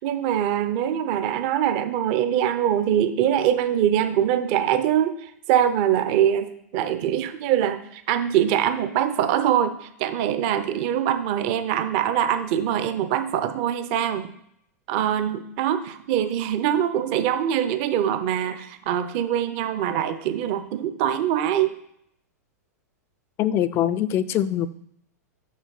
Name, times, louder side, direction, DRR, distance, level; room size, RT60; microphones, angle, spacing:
voice 1, 0.0-14.3 14.9-21.7, right 10 dB, 45° right, 10 dB, 0.7 m, -23 dB
voice 2, 23.4-24.7, left 11 dB, 30° left, 14 dB, 0.4 m, -23 dB
6.3 x 6.3 x 4.1 m, 0.73 s
figure-of-eight pair, 95°, 9 cm